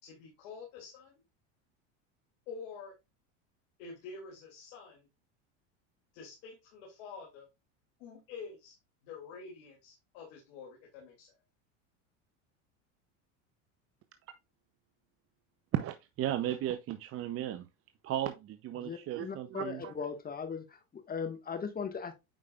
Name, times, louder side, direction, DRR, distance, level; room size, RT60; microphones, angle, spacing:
voice 1, 0.0-1.2 2.5-2.9 3.8-5.1 6.1-7.5 8.0-8.8 9.0-11.3, left 5 dB, 70° left, 2.7 m, -47 dB
voice 2, 15.7-17.7 18.0-19.9, right 12 dB, 40° right, 0.6 m, -35 dB
voice 3, 18.8-20.6 20.9-22.1, left 6 dB, 25° left, 1.6 m, -38 dB
8.9 x 4.9 x 2.4 m
supercardioid pair, 105°, 37 cm